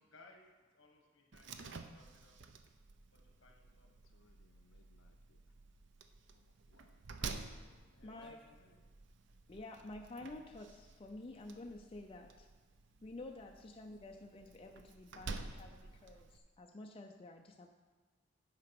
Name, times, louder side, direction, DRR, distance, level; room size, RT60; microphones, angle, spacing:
voice 1, 0.1-0.4 0.7-1.5 1.8-2.4 3.1-3.9 6.8-8.8, left 2 dB, 60° left, 1 dB, 1.5 m, -64 dB
Slam, 1.3-16.4, right 4 dB, 60° right, 0.5 m, -51 dB
voice 2, 3.9-5.4 6.4-6.8 13.4-13.5, left 4 dB, 90° left, 5 dB, 0.5 m, -72 dB
voice 3, 8.0-8.4 9.5-12.5 13.0-17.7, left 2 dB, 25° left, 2 dB, 0.4 m, -50 dB
9.5 x 4.8 x 6.0 m, 1.4 s
head